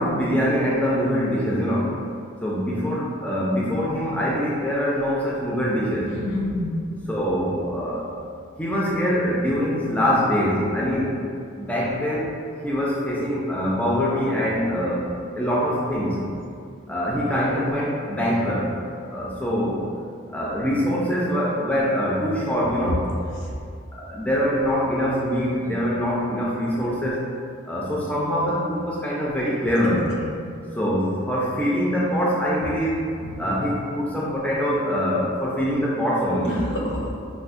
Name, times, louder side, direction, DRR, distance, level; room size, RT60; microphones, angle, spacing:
voice 1, 0.0-2.0 2.4-6.1 7.1-8.1 8.6-11.2 11.6-12.3 12.6-15.1 15.4-16.2 16.9-18.7 19.1-19.8 20.3-23.1 23.9-27.3 27.7-30.1 30.7-33.0 33.4-36.6, equal, 5° left, -6 dB, 0.3 m, -24 dB
voice 2, 6.0-6.8 29.8-30.3 33.2-33.4 36.5-37.1, left 1 dB, 65° left, -3 dB, 0.6 m, -28 dB
4.1 x 2.0 x 2.4 m, 2.3 s
head